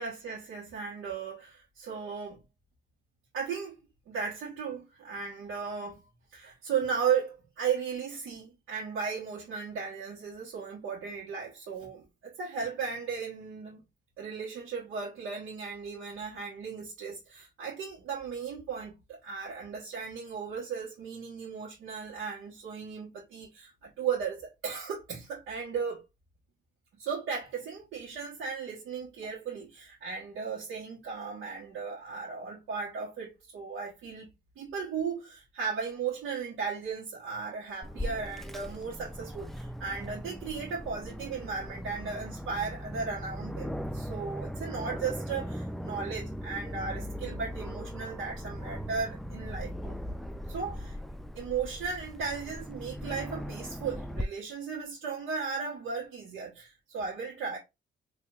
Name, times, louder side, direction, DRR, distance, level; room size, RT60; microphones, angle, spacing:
voice 1, 0.0-2.4 3.3-3.8 4.1-6.0 6.3-13.8 14.2-26.0 27.0-50.0 50.5-51.0 51.3-57.6, right 6 dB, 85° right, 1.4 m, -36 dB
Aircraft, 37.8-54.2, equal, ahead, 0.3 m, -39 dB
4.6 x 2.8 x 2.6 m
cardioid pair, 90°, 20 cm